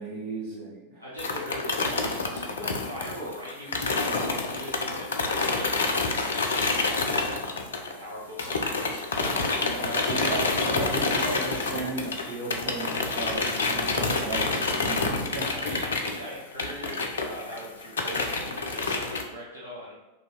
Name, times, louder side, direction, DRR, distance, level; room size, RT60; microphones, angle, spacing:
voice 1, 0.0-1.0 9.8-15.5, right 3 dB, 45° right, -5 dB, 1.3 m, -35 dB
voice 2, 1.0-6.4 6.7-7.3 8.0-10.4 14.0-14.3 15.5-19.9, equal, 85° right, -7 dB, 1.0 m, -41 dB
sound 1, 1.2-8.1 8.4-19.2, left 3 dB, 65° left, 0.4 m, -28 dB
2.8 x 2.7 x 4.2 m, 1.0 s
figure-of-eight pair, 90°, 0 cm